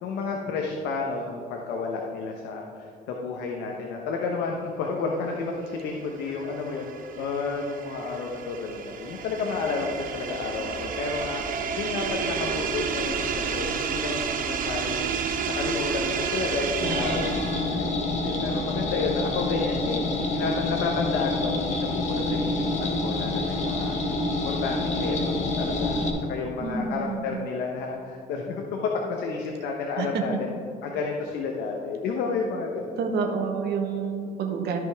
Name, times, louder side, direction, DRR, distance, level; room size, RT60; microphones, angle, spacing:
voice 1, 0.0-11.4 11.8-15.0 15.6-20.1 20.3-23.9 24.3-30.5 30.8-33.0, left 4 dB, 85° left, 0 dB, 1.0 m, -31 dB
sound 1, 5.8-17.8, right 6 dB, 55° right, 0.9 m, -30 dB
sound 2, 16.8-26.1, left 2 dB, 45° left, 1.4 m, -27 dB
voice 2, 26.6-27.4 30.0-30.1 33.0-34.8, right 5 dB, 70° right, 2 dB, 1.3 m, -29 dB
14.0 x 5.3 x 3.5 m, 2.3 s
cardioid pair, 110°, 17 cm